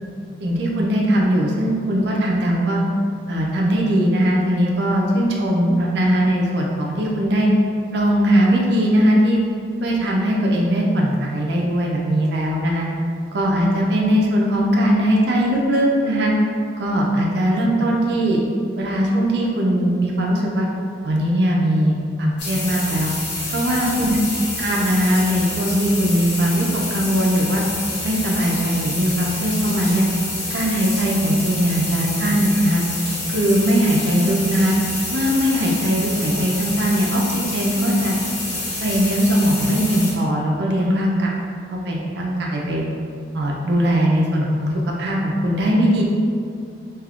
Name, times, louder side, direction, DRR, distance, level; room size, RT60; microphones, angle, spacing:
voice 1, 0.4-2.8 3.3-7.5 7.9-9.4 9.8-12.9 13.3-16.3 16.8-18.4 18.8-20.7 21.0-23.1 23.5-24.2 24.6-27.6 28.0-30.1 30.5-32.8 33.3-34.8 35.1-38.1 38.8-41.3 41.9-42.9 43.3-46.0, equal, 65° right, -2 dB, 0.4 m, -20 dB
sound 1, 22.4-40.1, left 2 dB, 70° left, 0.9 m, -28 dB
3.4 x 2.8 x 2.4 m, 2.3 s
head